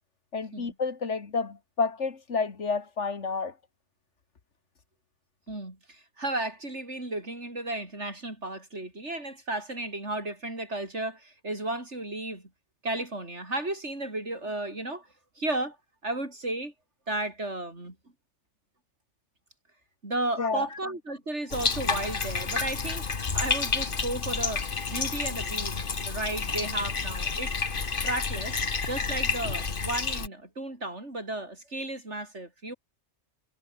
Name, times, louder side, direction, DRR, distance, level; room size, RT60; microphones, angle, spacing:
voice 1, 0.3-3.5 20.4-20.7, left 4 dB, 75° left, 2.3 m, -30 dB
voice 2, 5.5-12.5 12.8-15.1 15.4-15.8 16.0-16.7 17.1-18.0 20.0-25.8 26.1-27.5 28.0-28.6 28.9-32.7, right 2 dB, 70° right, 6.2 m, -34 dB
Bathtub (filling or washing), 21.5-30.3, left 4 dB, 45° left, 1.7 m, -30 dB
omnidirectional pair, 1.2 m